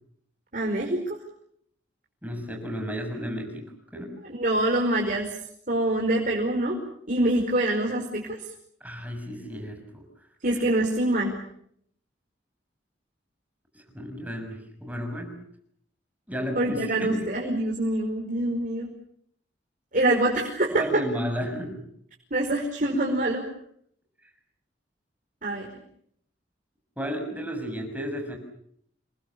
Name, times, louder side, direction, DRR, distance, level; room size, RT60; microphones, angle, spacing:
voice 1, 0.5-1.2 4.2-5.3 5.7-6.8 7.1-8.4 10.4-11.3 16.5-18.9 19.9-20.8 22.3-23.4 25.4-25.7, right 1 dB, 45° right, 0 dB, 5.0 m, -25 dB
voice 2, 2.2-3.7 3.9-4.1 8.8-10.0 13.9-15.4 16.3-17.3 20.7-21.9 27.0-28.4, equal, 10° right, 3 dB, 6.5 m, -33 dB
29.0 x 22.5 x 7.2 m, 0.68 s
head